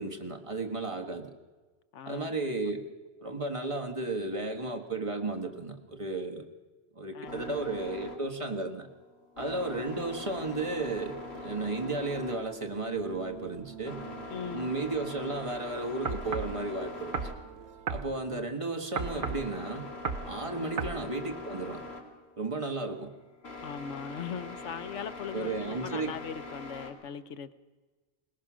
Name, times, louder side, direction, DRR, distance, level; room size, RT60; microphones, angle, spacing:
voice 1, 0.0-1.3 2.1-2.9 3.2-6.5 7.0-8.9 9.4-14.0 14.5-17.2 17.9-19.9 20.3-21.8 22.4-23.1 25.3-26.1, right 2 dB, 25° right, 3 dB, 1.6 m, -34 dB
voice 2, 1.9-2.3 7.1-7.5 11.8-12.0 14.3-14.7 18.3-18.5 20.6-20.7 23.6-27.5, left 7 dB, 85° left, 13 dB, 1.2 m, -40 dB
sound 1, 7.2-26.9, left 2 dB, 60° left, 2.8 m, -44 dB
sound 2, 9.6-18.4, right 7 dB, 70° right, 1.3 m, -49 dB
sound 3, 16.1-16.6 17.1-17.4 17.9-18.1 19.0-19.5 20.1-20.3 20.8-21.0, right 5 dB, 50° right, 0.9 m, -33 dB
21.0 x 19.5 x 6.3 m, 1.3 s
omnidirectional pair, 1.2 m